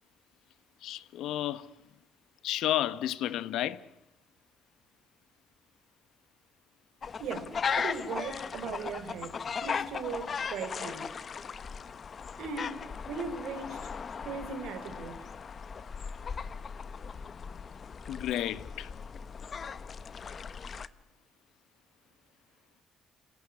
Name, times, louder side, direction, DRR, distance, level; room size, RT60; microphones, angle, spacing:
voice 1, 0.8-1.7 2.4-3.8 18.1-18.9, left 13 dB, 80° left, 1.1 m, -32 dB
sound 1, 7.0-20.9, left 6 dB, 35° left, 0.9 m, -38 dB
voice 2, 7.2-11.1 12.4-13.9 14.2-15.2, right 5 dB, 80° right, 3.7 m, -39 dB
28.0 x 18.0 x 9.6 m
cardioid pair, 160°, 0 cm